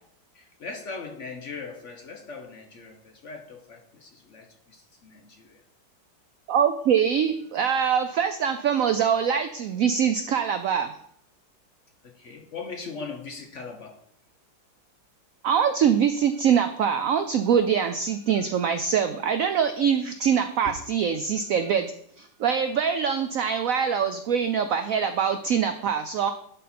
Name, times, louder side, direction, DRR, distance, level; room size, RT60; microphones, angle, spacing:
voice 1, 0.3-5.6 12.0-14.0, left 4 dB, 55° left, 4 dB, 0.9 m, -40 dB
voice 2, 6.5-10.9 15.4-21.9 22.2-26.3, right 7 dB, 90° right, 8 dB, 0.7 m, -23 dB
11.0 x 4.0 x 4.2 m, 0.68 s
omnidirectional pair, 2.0 m